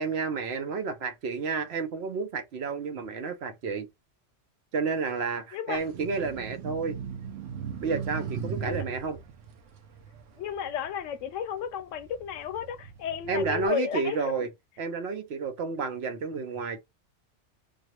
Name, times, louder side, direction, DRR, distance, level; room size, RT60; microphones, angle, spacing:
voice 1, 0.0-3.9 4.7-7.0 7.8-9.2 13.3-14.5 14.8-16.8, right 4 dB, 65° right, 0.9 m, -31 dB
voice 2, 5.5-5.9 8.6-8.8 10.4-14.5, left 8 dB, 90° left, 0.9 m, -33 dB
sound 1, 5.7-11.3 11.8-13.7, right 7 dB, 90° right, 1.1 m, -38 dB
3.4 x 2.3 x 3.0 m
omnidirectional pair, 1.2 m